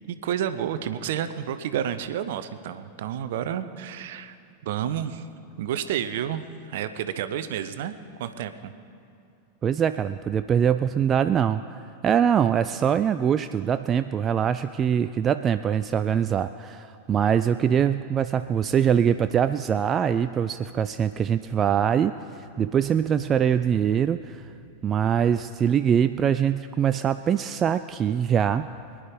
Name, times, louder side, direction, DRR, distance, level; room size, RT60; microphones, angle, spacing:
voice 1, 0.0-4.4 4.6-5.2 5.6-8.7, right 10 dB, 55° right, 12 dB, 0.7 m, -30 dB
voice 2, 9.6-11.6 12.0-22.1 22.6-24.4 24.8-28.7, right 8 dB, 25° right, 11 dB, 0.3 m, -23 dB
sound 1, 19.2-28.4, right 2 dB, 90° left, 1.7 m, -52 dB
23.0 x 10.5 x 4.9 m, 2.5 s
figure-of-eight pair, 90°, 0 cm